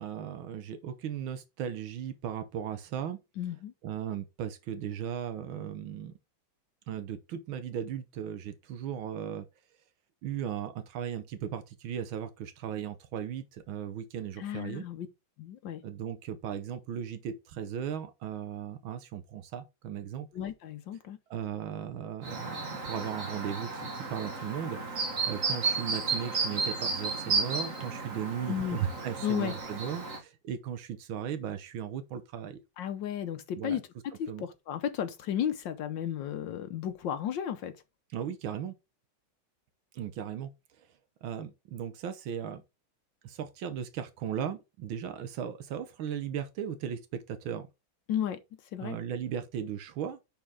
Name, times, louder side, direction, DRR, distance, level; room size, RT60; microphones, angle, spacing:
voice 1, 0.0-3.2 3.8-6.1 6.9-9.5 10.2-14.9 15.8-20.3 21.3-32.6 33.6-33.8 34.3-34.5 38.1-38.7 39.9-40.5 40.8-40.9 41.2-42.6 43.2-47.7 48.8-50.2, right 9 dB, 85° right, 1.7 m, -37 dB
voice 2, 3.4-3.7 14.4-15.1 15.4-15.8 20.3-21.2 28.5-28.8 29.2-29.5 32.8-33.8 34.2-37.7 48.1-48.4 48.7-49.0, left 10 dB, 70° left, 1.5 m, -33 dB
Chirp tweet, 22.2-30.2, right 4 dB, 45° right, 1.9 m, -33 dB
10.5 x 4.4 x 3.6 m
omnidirectional pair, 2.1 m